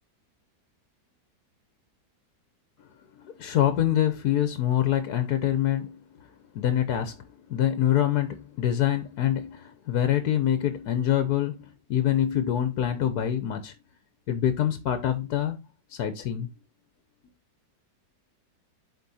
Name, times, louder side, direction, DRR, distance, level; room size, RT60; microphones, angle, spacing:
voice 1, 3.2-6.0 6.5-13.7 14.3-15.6 15.9-16.5, left 11 dB, 70° left, 1.3 m, -25 dB
8.3 x 4.5 x 4.1 m
omnidirectional pair, 1.8 m